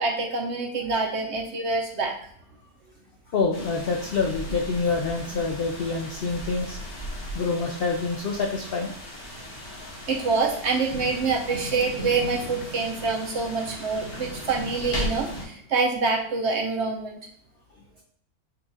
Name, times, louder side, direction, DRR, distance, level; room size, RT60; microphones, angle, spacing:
voice 1, 0.0-2.2 10.1-17.2, right 4 dB, 55° right, 1 dB, 0.9 m, -26 dB
voice 2, 3.3-6.9 7.3-8.9 9.8-9.9, left 4 dB, 70° left, 2 dB, 0.5 m, -27 dB
sound 1, 3.5-15.5, equal, 90° left, 1.9 m, -37 dB
5.5 x 2.4 x 4.0 m, 0.67 s
omnidirectional pair, 1.5 m